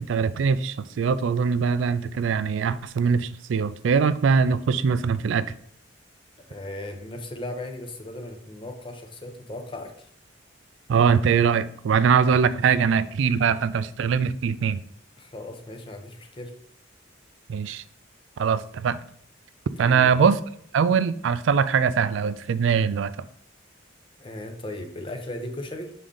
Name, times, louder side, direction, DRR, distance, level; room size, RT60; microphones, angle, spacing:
voice 1, 0.0-5.4 10.9-14.8 17.5-17.8 18.4-19.0 19.8-20.4 20.7-23.1, right 6 dB, 70° right, 15 dB, 0.3 m, -22 dB
voice 2, 6.5-10.1 15.2-16.5 19.8-20.1 24.2-25.9, left 1 dB, 25° left, 5 dB, 0.7 m, -37 dB
6.9 x 3.7 x 3.8 m, 0.65 s
head